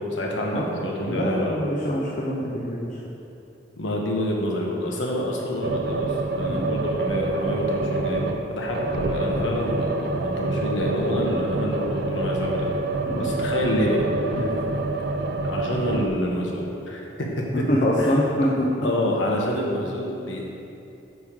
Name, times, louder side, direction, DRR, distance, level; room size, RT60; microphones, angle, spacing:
voice 1, 0.0-1.6 3.8-12.8 13.2-14.5 15.4-17.6 18.0-18.1 18.8-20.4, left 1 dB, 85° left, -1 dB, 1.3 m, -27 dB
voice 2, 0.5-2.9 6.5-6.7 9.4-9.6 13.1-13.3 14.4-14.6 17.5-18.7, equal, 40° left, -4 dB, 0.8 m, -25 dB
sound 1, 5.6-8.5 8.7-16.1, right 2 dB, 55° right, 0.5 m, -27 dB
9.4 x 3.6 x 6.2 m, 2.8 s
head